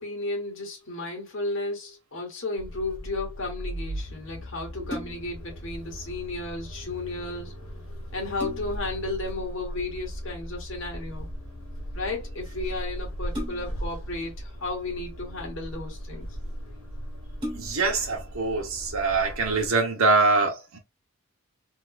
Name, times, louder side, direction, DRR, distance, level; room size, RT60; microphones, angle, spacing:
voice 1, 0.0-7.6 8.1-11.3 11.9-16.3, left 2 dB, 60° left, 1.5 m, -33 dB
sound 1, 2.6-19.7, equal, 85° left, 1.4 m, -38 dB
sound 2, 4.9-5.4 7.5-7.6 8.0-8.9 10.5-10.9 13.3-13.9 14.9-15.6 16.3-16.4 16.8-16.9 17.3-18.0 18.5-18.6, equal, 20° right, 1.3 m, -38 dB
voice 2, 17.5-20.8, right 3 dB, 70° right, 1.3 m, -24 dB
3.5 x 3.0 x 2.5 m
head